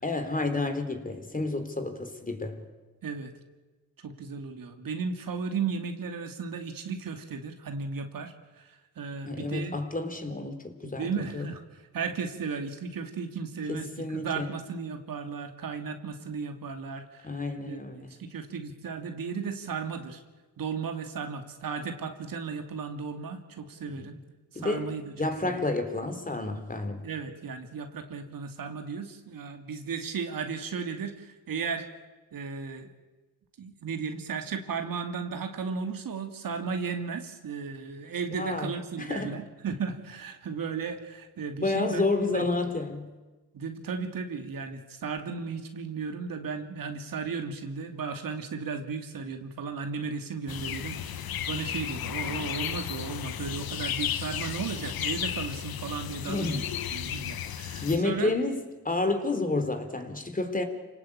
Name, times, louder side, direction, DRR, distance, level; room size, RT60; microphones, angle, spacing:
voice 1, 0.0-2.6 9.2-11.5 13.7-14.5 17.2-18.1 23.9-24.2 24.5-27.0 38.3-38.7 39.0-39.4 41.6-43.1 56.3-56.7 57.3-57.4 57.8-60.6, left 2 dB, 20° left, 4.0 m, -30 dB
voice 2, 4.0-9.8 10.8-11.6 11.9-17.3 17.7-17.8 18.2-20.2 20.6-24.2 24.5-25.0 25.4-25.6 27.0-31.9 32.3-32.9 33.6-42.0 42.3-42.4 43.5-56.6 56.9-58.3, right 5 dB, 60° right, 2.7 m, -35 dB
sound 1, 50.5-58.0, left 9 dB, 65° left, 1.5 m, -34 dB
27.5 x 18.5 x 8.7 m
supercardioid pair, 65°, 38 cm